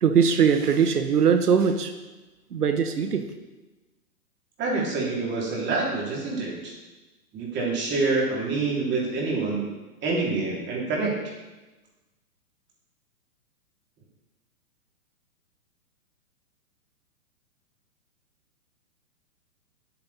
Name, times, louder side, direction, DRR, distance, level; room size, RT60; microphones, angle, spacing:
voice 1, 0.0-1.9 2.5-3.3, right 7 dB, 90° right, 7 dB, 1.0 m, -21 dB
voice 2, 4.6-6.7 7.3-9.6 10.0-11.1, right 3 dB, 25° right, -3 dB, 3.1 m, -26 dB
9.8 x 8.7 x 4.2 m, 1.1 s
hypercardioid pair, 130°, 45 cm